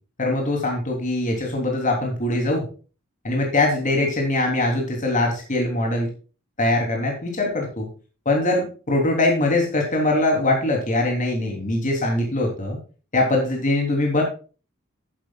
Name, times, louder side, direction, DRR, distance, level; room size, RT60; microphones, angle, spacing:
voice 1, 0.2-2.7 3.2-6.1 6.6-7.9 8.2-12.8 13.1-14.2, left 2 dB, 35° left, 1 dB, 3.2 m, -22 dB
11.5 x 11.0 x 2.4 m, 0.34 s
head